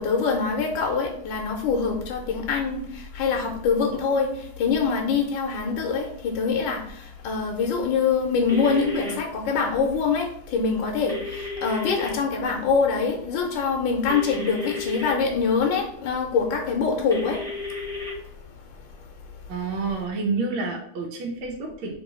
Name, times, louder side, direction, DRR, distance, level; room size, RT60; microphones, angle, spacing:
voice 1, 0.0-19.5, left 5 dB, 70° left, 1 dB, 1.2 m, -25 dB
sound 1, 8.5-9.1 11.1-12.1 14.1-15.1 17.1-18.1, left 2 dB, 5° left, 0.4 m, -33 dB
voice 2, 19.5-22.0, right 4 dB, 75° right, 0 dB, 1.4 m, -29 dB
3.2 x 3.0 x 3.6 m, 0.69 s
omnidirectional pair, 2.3 m